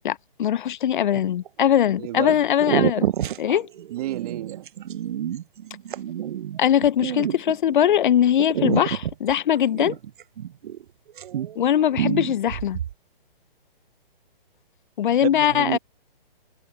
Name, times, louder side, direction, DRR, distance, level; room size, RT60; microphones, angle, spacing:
voice 1, 0.0-3.1 3.4-3.7 6.6-10.0 11.6-12.8 15.0-15.8, left 10 dB, 55° left, 0.6 m, -21 dB
sound 1, 1.1-1.6 2.3-2.4 2.6-7.9 8.4-10.8 11.1-11.7 11.9-12.9, right 10 dB, 60° right, 0.6 m, -28 dB
voice 2, 1.8-2.4 3.9-4.7 15.2-15.8, right 15 dB, 40° right, 2.0 m, -30 dB
hypercardioid pair, 145°, 29 cm